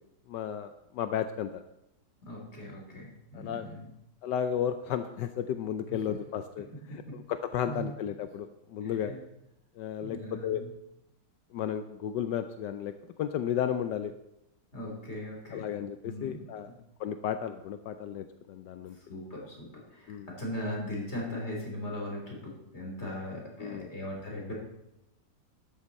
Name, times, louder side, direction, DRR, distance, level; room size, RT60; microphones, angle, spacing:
voice 1, 0.3-1.6 3.3-3.7 4.2-6.7 6.9-9.1 9.8-10.6 11.5-12.9 13.2-14.1 15.5-16.7 17.0-19.0 20.1-20.3 23.6-23.9, left 9 dB, 75° left, 9 dB, 1.2 m, -33 dB
voice 2, 2.2-3.9 5.9-6.0 7.1-7.2 7.7-7.9 8.8-9.2 10.0-10.7 14.7-15.6 16.0-16.7 19.1-24.5, left 1 dB, 35° left, -2 dB, 3.9 m, -39 dB
12.5 x 11.0 x 4.2 m, 0.86 s
omnidirectional pair, 2.0 m